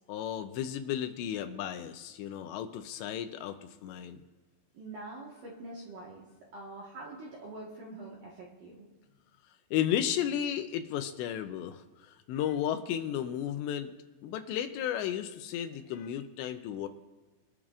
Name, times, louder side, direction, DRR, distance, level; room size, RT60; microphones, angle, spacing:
voice 1, 0.1-4.2 9.7-13.9 14.2-16.9, left 10 dB, 85° left, 7 dB, 2.6 m, -34 dB
voice 2, 4.7-6.2 6.5-8.9, right 2 dB, 60° right, -5 dB, 2.3 m, -45 dB
23.5 x 12.0 x 2.5 m, 1.2 s
omnidirectional pair, 5.6 m